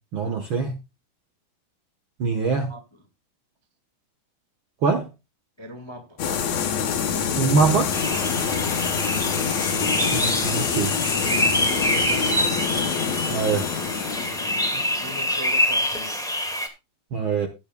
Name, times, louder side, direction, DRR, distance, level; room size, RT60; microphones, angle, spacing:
voice 1, 0.1-0.7 2.2-2.7 4.8-5.1 7.4-7.9 10.1-10.9 13.3-13.7 17.1-17.5, right 5 dB, 65° right, 1.2 m, -23 dB
voice 2, 5.6-6.2 14.7-16.2, left 1 dB, 30° left, 0.4 m, -42 dB
sound 1, 6.2-15.8, left 7 dB, 60° left, 2.3 m, -26 dB
sound 2, 7.9-16.7, left 1 dB, ahead, 0.8 m, -26 dB
16.0 x 8.9 x 2.3 m
omnidirectional pair, 4.0 m